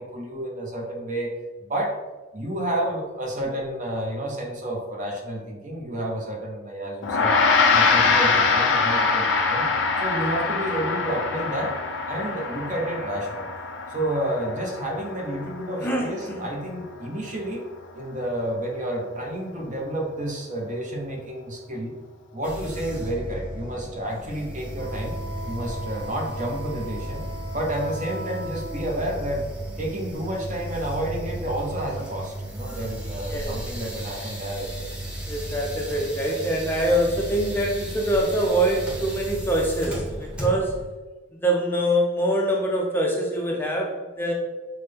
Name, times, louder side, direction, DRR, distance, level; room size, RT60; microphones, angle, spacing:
voice 1, 0.0-1.4 1.6-2.0 2.3-7.4 7.7-9.7 10.0-11.8 12.1-13.5 13.9-17.6 17.9-21.9 22.3-25.1 25.5-27.2 27.5-29.5 29.8-34.9, right 1 dB, 40° right, 0 dB, 0.8 m, -30 dB
Gong, 7.0-16.6, left 4 dB, 80° left, 0.5 m, -24 dB
voice 2, 15.8-16.4 33.3-33.6 35.3-40.8 41.4-44.3, right 1 dB, 10° left, -1 dB, 0.5 m, -24 dB
sound 1, 22.4-40.9, right 1 dB, 5° right, 0.9 m, -34 dB
Wind instrument woodwind instrument, 24.8-28.9, equal, 75° right, 1.2 m, -39 dB
5.7 x 2.1 x 3.3 m, 1.3 s
head